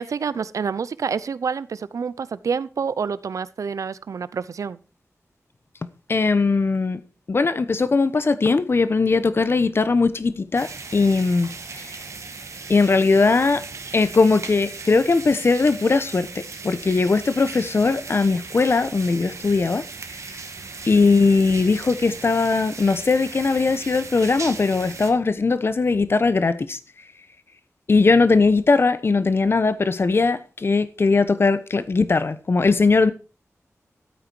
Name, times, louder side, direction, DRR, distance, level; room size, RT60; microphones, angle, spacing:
voice 1, 0.0-4.8, right 6 dB, 90° right, 0.6 m, -28 dB
voice 2, 6.1-7.0 7.3-11.5 12.7-13.6 13.9-19.8 20.9-26.8 27.9-33.1, left 4 dB, 50° left, 1.0 m, -19 dB
sound 1, 10.6-25.1, right 4 dB, 70° right, 1.9 m, -37 dB
13.0 x 8.9 x 4.6 m
wide cardioid pair, 115°, 5 cm